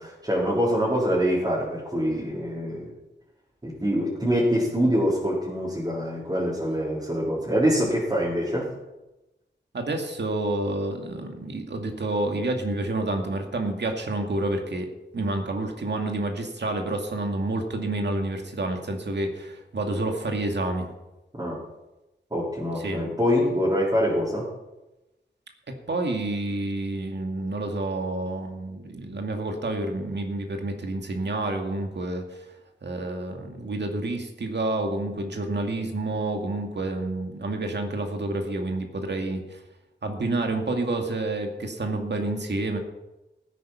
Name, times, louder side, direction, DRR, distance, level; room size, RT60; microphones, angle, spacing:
voice 1, 0.0-2.9 3.6-8.7 21.4-21.6 22.3-24.5, equal, 20° right, -7 dB, 4.0 m, -25 dB
voice 2, 9.7-14.9 15.1-20.9 22.8-23.1 25.9-32.2 32.8-39.6 40.0-42.8, right 2 dB, 65° right, 3 dB, 2.2 m, -29 dB
15.5 x 9.4 x 5.8 m, 1.0 s
wide cardioid pair, 75°, 19 cm